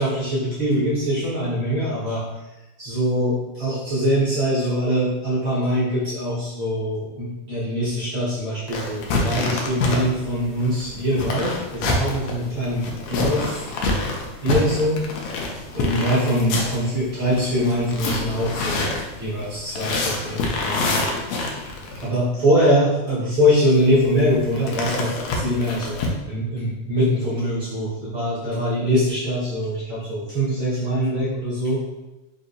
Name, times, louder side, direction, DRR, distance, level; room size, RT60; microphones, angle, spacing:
voice 1, 0.0-2.2 2.8-13.7 14.4-15.0 15.7-21.0 21.3-21.7 22.0-31.8, equal, 50° right, -11 dB, 1.6 m, -23 dB
sound 1, 8.7-22.1 23.7-26.1, left 2 dB, 80° left, 1.6 m, -27 dB
5.1 x 2.7 x 2.6 m, 1.0 s
omnidirectional pair, 3.7 m